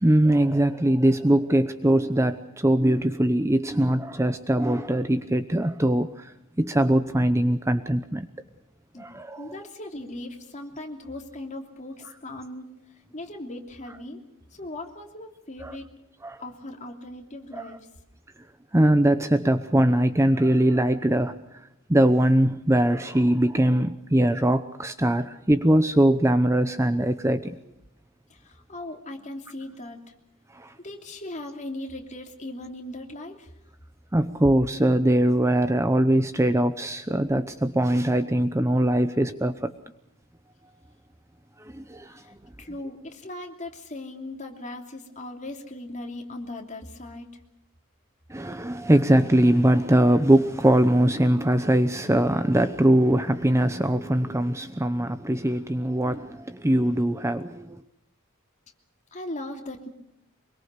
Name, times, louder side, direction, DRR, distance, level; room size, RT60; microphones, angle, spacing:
voice 1, 0.0-6.3 6.6-8.3 9.0-9.5 15.6-15.8 16.2-16.4 17.5-17.7 18.7-21.3 21.9-27.6 30.5-30.7 34.1-39.7 41.7-42.1 48.3-57.8, right 1 dB, 15° right, 10 dB, 0.8 m, -21 dB
voice 2, 9.4-12.7 13.1-14.2 14.5-15.9 16.4-17.8 28.3-30.0 30.8-33.5 42.1-47.4 59.1-59.9, left 1 dB, 35° left, 3 dB, 3.0 m, -38 dB
24.5 x 23.0 x 6.7 m, 0.84 s
head